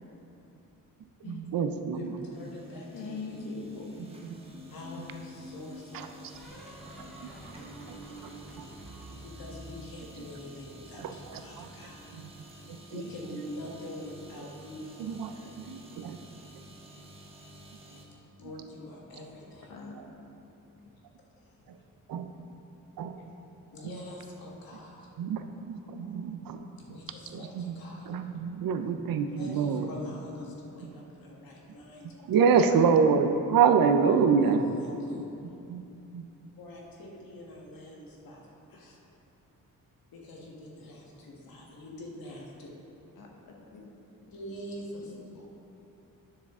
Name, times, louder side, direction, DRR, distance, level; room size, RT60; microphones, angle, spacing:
voice 1, 1.2-2.2 4.0-4.4 5.0-5.1 5.9-6.1 7.5-7.6 7.9-8.3 10.2-10.3 11.0-11.7 12.2-12.3 12.9-13.4 13.7-13.8 15.0-16.2 20.0-20.1 22.1-22.3 23.0-23.2 23.8-24.0 25.2-27.0 27.3-29.9 30.8-30.9 32.3-34.6 35.7-35.8 36.1-36.3, right 6 dB, 80° right, 8 dB, 0.6 m, -27 dB
voice 2, 1.9-3.5 4.7-6.1 8.5-8.6 9.2-12.0 12.4-15.4 18.4-19.8 21.4-21.7 23.7-25.1 25.8-26.2 26.8-28.4 29.4-32.3 34.0-35.3 36.6-38.4 38.7-39.0 40.1-42.8 44.3-45.5, left 1 dB, 85° left, -2 dB, 1.5 m, -44 dB
sound 1, 2.3-18.1, right 1 dB, 15° right, 0.8 m, -51 dB
voice 3, 2.9-4.0 15.3-15.5 19.7-20.0 32.3-32.8 38.7-39.0 43.2-44.2 44.5-44.6 45.0-45.2, left 4 dB, 65° left, 0 dB, 1.2 m, -42 dB
sound 2, 4.5-11.3 11.6-13.2 14.2-14.5 14.8-15.1 16.7-16.9 17.3-17.5 19.1-19.2, equal, ahead, 1.5 m, -49 dB
9.7 x 6.5 x 3.6 m, 2.9 s
wide cardioid pair, 175°, 34 cm